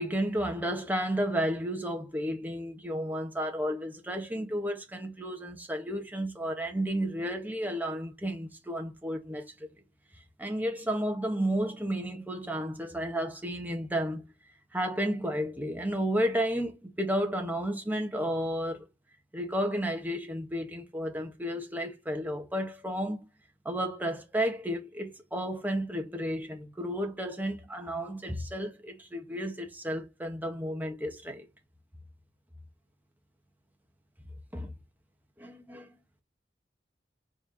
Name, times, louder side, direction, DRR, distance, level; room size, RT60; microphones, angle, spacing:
voice 1, 0.0-9.5 10.4-14.3 14.7-18.8 19.3-23.2 23.7-31.5 34.5-34.7 35.4-35.9, equal, 10° right, 1.8 m, -32 dB
5.0 x 4.9 x 5.5 m
head